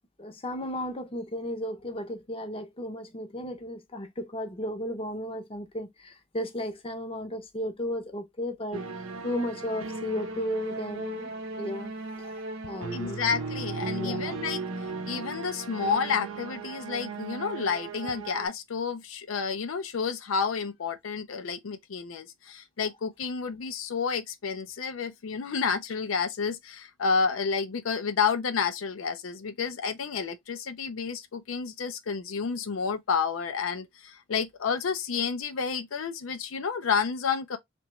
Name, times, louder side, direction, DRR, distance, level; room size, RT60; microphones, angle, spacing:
voice 1, 0.2-8.9 9.2-11.3 11.6-11.9 12.2-13.3 13.9-14.4, equal, 25° left, 0.6 m, -34 dB
sound 1, 8.7-18.5, right 4 dB, 85° right, 0.6 m, -36 dB
voice 2, 12.9-14.6 15.1-37.6, left 5 dB, 75° left, 0.5 m, -30 dB
3.4 x 2.9 x 3.0 m
head